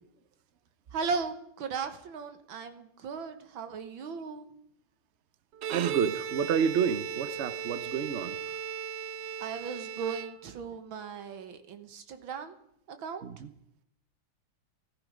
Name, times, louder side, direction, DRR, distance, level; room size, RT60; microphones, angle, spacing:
voice 1, 0.9-4.5 9.4-12.6 12.9-13.2, right 5 dB, 85° right, 2.0 m, -37 dB
Bowed string instrument, 5.5-10.8, right 7 dB, 70° right, 1.3 m, -37 dB
voice 2, 5.7-8.4 13.2-13.5, right 7 dB, 50° right, 0.8 m, -29 dB
15.5 x 14.5 x 5.1 m
omnidirectional pair, 2.1 m